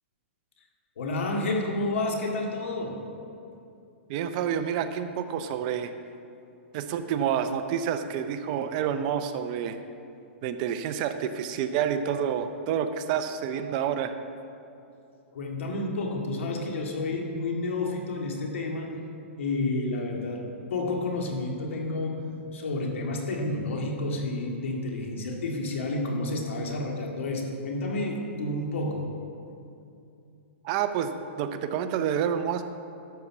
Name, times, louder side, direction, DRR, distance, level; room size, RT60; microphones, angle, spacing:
voice 1, 1.0-3.1 15.3-19.0 19.4-29.1, left 2 dB, 75° left, 1 dB, 2.0 m, -30 dB
voice 2, 4.1-5.9 6.7-9.8 10.4-14.1 30.6-31.1 31.4-32.6, right 8 dB, 35° right, 9 dB, 0.6 m, -28 dB
12.5 x 6.8 x 6.0 m, 2.6 s
hypercardioid pair, 155°, 7 cm